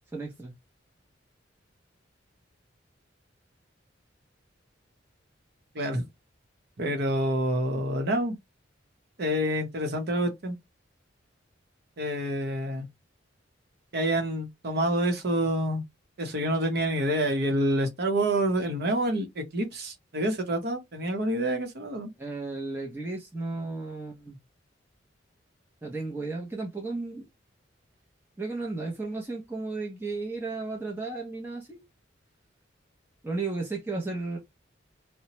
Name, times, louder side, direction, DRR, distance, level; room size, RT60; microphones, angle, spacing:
voice 1, 0.1-0.5 22.2-24.4 25.8-27.3 28.4-31.8 33.2-34.4, right 3 dB, 10° right, 0.6 m, -34 dB
voice 2, 5.7-6.1 6.8-8.3 9.2-10.5 12.0-12.9 13.9-15.8 16.2-22.1, right 1 dB, 55° right, 0.7 m, -27 dB
2.8 x 2.1 x 2.9 m
head